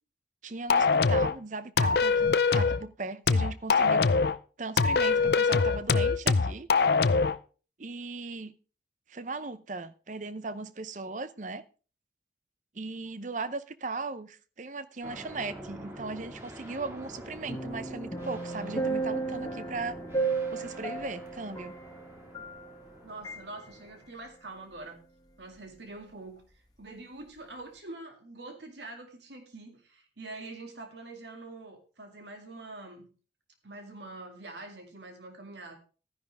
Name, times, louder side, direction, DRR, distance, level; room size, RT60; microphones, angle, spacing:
voice 1, 0.4-4.1 4.6-6.7 7.8-8.5 9.1-11.6 12.7-20.0 20.5-21.8, right 3 dB, 45° right, 0.7 m, -38 dB
sound 1, 0.7-1.3 1.8-2.8 3.3-4.4 4.8-7.4, left 4 dB, 60° left, 0.5 m, -23 dB
sound 2, 15.0-24.1, right 1 dB, 15° right, 2.0 m, -46 dB
sound 3, 17.5-22.9 23.2-23.4, right 3 dB, 20° left, 1.4 m, -34 dB
voice 2, 23.0-25.0 25.4-33.1 33.6-35.8, right 2 dB, 75° right, 2.2 m, -45 dB
13.0 x 10.5 x 3.4 m
head